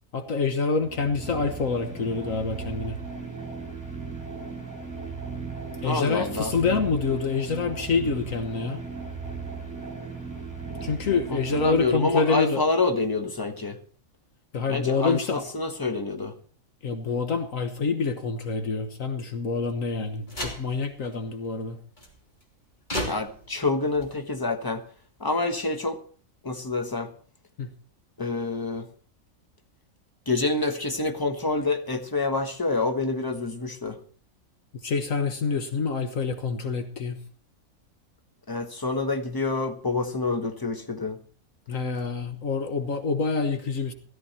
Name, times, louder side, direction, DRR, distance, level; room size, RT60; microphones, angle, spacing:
voice 1, 0.1-3.0 5.8-8.8 10.8-12.6 14.5-15.4 16.8-21.8 27.6-27.7 34.8-37.2 41.7-43.9, left 4 dB, 70° left, 7 dB, 1.6 m, -27 dB
sound 1, 0.7-12.4, right 4 dB, 10° right, 4.2 m, -37 dB
voice 2, 5.8-6.5 11.3-13.8 14.7-16.3 23.1-24.8 25.2-26.0 26.4-27.1 28.2-28.9 30.3-34.0 38.5-41.2, left 3 dB, 15° left, 6 dB, 1.3 m, -27 dB
sound 2, 20.3-21.1 22.0-22.4 22.9-24.2, equal, 35° left, 3.2 m, -35 dB
15.5 x 14.0 x 4.3 m, 0.43 s
omnidirectional pair, 1.4 m